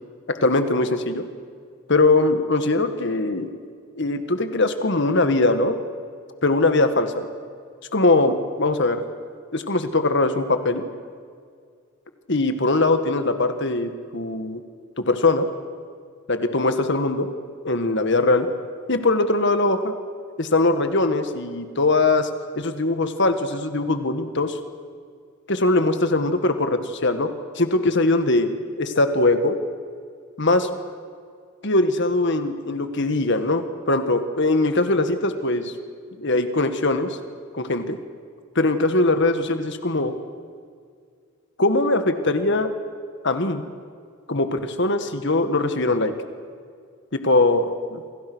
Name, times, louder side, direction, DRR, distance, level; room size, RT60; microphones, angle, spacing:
voice 1, 0.3-1.2 1.9-3.5 4.0-5.8 6.4-7.3 7.9-9.0 9.5-10.8 12.3-14.6 15.0-15.5 16.3-17.3 17.6-18.5 18.9-19.9 20.4-22.3 22.6-24.6 25.5-27.3 27.6-28.5 28.8-29.6 30.4-30.7 31.6-35.7 36.2-37.1 37.5-38.0 38.6-40.1 41.6-42.7 43.2-43.7 44.3-46.1 47.1-48.0, left 2 dB, 60° left, 8 dB, 1.8 m, -21 dB
28.5 x 26.0 x 6.3 m, 2.1 s
head